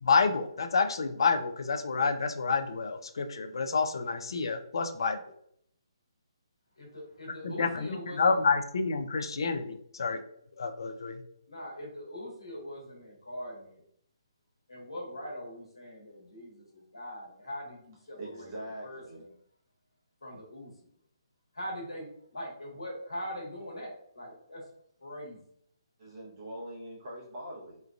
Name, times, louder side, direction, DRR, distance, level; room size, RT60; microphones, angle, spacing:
voice 1, 0.0-5.2 7.4-10.2 10.6-11.2, left 4 dB, 60° left, 7 dB, 0.4 m, -28 dB
voice 2, 6.8-8.3 11.5-13.8 14.7-18.5 18.8-19.2 20.2-20.7 21.5-22.1 22.3-24.6 25.0-25.4, equal, 75° left, -2 dB, 1.3 m, -42 dB
voice 3, 18.2-19.2 26.0-27.8, right 1 dB, 35° right, -5 dB, 0.9 m, -42 dB
3.1 x 2.3 x 2.3 m, 0.67 s
figure-of-eight pair, 135°, 3 cm